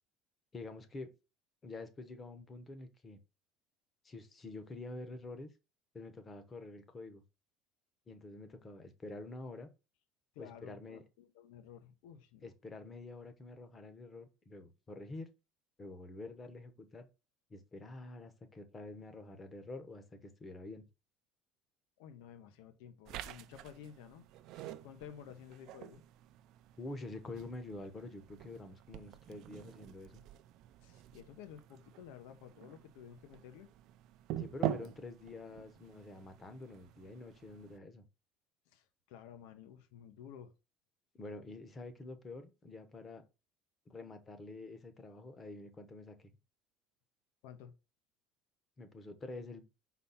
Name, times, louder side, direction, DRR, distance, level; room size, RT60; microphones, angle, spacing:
voice 1, 0.5-1.1 1.6-3.2 4.0-5.5 5.9-7.2 8.1-9.7 10.4-11.0 12.4-15.3 15.8-17.1 17.5-20.8 26.8-30.2 34.4-38.0 41.1-43.2 43.9-46.3 48.8-49.6, left 2 dB, 15° left, 0.9 m, -47 dB
voice 2, 10.3-12.5 22.0-24.2 24.5-26.0 30.8-33.7 38.7-40.5 47.4-47.7, left 9 dB, 80° left, 1.0 m, -53 dB
sound 1, 23.1-37.8, right 12 dB, 50° right, 0.5 m, -46 dB
5.6 x 4.1 x 5.6 m
cardioid pair, 175°, 0 cm